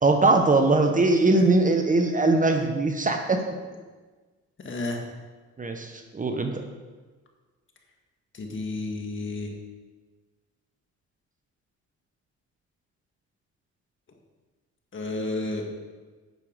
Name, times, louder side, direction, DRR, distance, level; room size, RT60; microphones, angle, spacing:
voice 1, 0.0-3.4 5.6-6.6, right 2 dB, 25° right, 5 dB, 0.9 m, -21 dB
voice 2, 4.6-5.0 8.3-9.5 14.9-15.7, left 2 dB, 40° left, 2 dB, 1.8 m, -31 dB
9.2 x 6.5 x 5.0 m, 1.4 s
cardioid pair, 90°, 30 cm